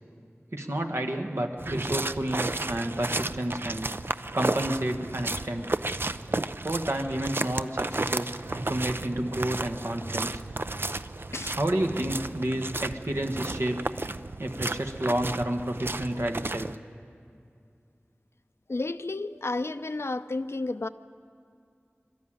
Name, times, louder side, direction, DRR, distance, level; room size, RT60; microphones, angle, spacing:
voice 1, 0.5-3.9 4.3-5.7 6.6-10.4 11.5-13.8 14.4-16.7, right 1 dB, 75° right, 3 dB, 1.5 m, -30 dB
sound 1, 1.6-16.8, right 2 dB, 55° right, 0.5 m, -33 dB
voice 2, 18.7-20.9, left 2 dB, 70° left, 12 dB, 0.6 m, -32 dB
23.5 x 13.0 x 8.9 m, 2.3 s
wide cardioid pair, 45°, 5 cm